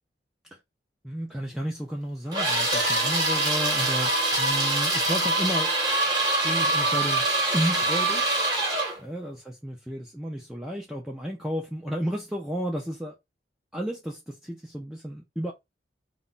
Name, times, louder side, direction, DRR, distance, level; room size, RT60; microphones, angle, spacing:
voice 1, 1.0-5.7 6.4-8.4 9.0-13.2 13.7-15.5, equal, ahead, 0.3 m, -32 dB
sound 1, 2.3-9.0, right 2 dB, 25° right, 0.8 m, -24 dB
Piano, 2.7-3.6, left 3 dB, 80° left, 0.7 m, -36 dB
2.1 x 2.0 x 3.7 m
head